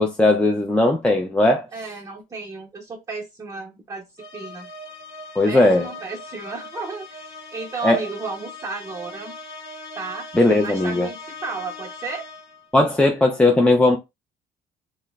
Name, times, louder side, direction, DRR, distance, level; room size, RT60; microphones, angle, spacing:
voice 1, 0.0-1.7 5.4-5.8 7.8-8.0 10.3-11.1 12.7-14.0, left 2 dB, 5° left, 0.4 m, -17 dB
voice 2, 1.7-4.1 4.3-4.7 5.5-9.4 9.9-10.3 10.6-12.2, right 4 dB, 20° right, 0.7 m, -33 dB
sound 1, 4.2-12.7, left 2 dB, 90° left, 0.9 m, -39 dB
2.9 x 2.0 x 2.2 m
cardioid pair, 110°, 17 cm